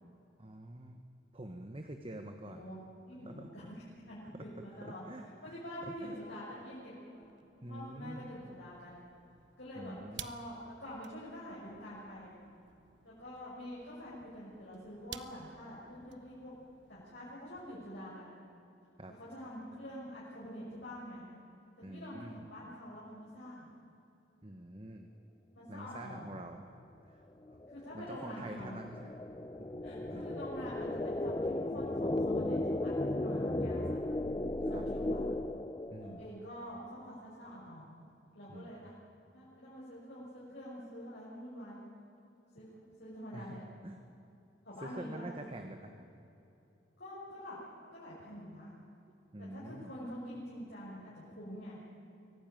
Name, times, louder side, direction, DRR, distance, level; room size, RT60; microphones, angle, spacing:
voice 1, 0.4-1.0 1.3-2.6 3.2-3.7 4.8-6.1 7.6-8.3 9.8-10.2 19.0-19.1 21.8-22.4 24.4-25.1 25.7-26.6 27.1-27.2 27.5-27.6 27.9-29.2 29.6-30.2 34.6-34.8 35.9-36.3 38.5-38.8 43.3-43.6 43.8-44.0 44.8-46.0 49.3-49.9, right 1 dB, 30° right, 5 dB, 1.2 m, -46 dB
voice 2, 2.4-9.0 9.6-12.3 13.0-16.5 16.9-18.4 19.2-21.2 21.9-23.7 25.5-26.4 27.7-28.8 29.8-34.0 34.7-35.2 36.0-37.9 38.3-38.9 39.3-41.8 42.5-42.7 43.0-43.7 44.6-45.5 47.0-47.6 47.9-48.8 49.4-51.8, equal, 60° left, -8 dB, 6.1 m, -46 dB
sound 1, 7.1-17.6, right 9 dB, 65° right, 1.0 m, -55 dB
sound 2, 27.5-36.4, left 1 dB, 20° left, 0.6 m, -35 dB
24.0 x 17.5 x 9.3 m, 2.8 s
head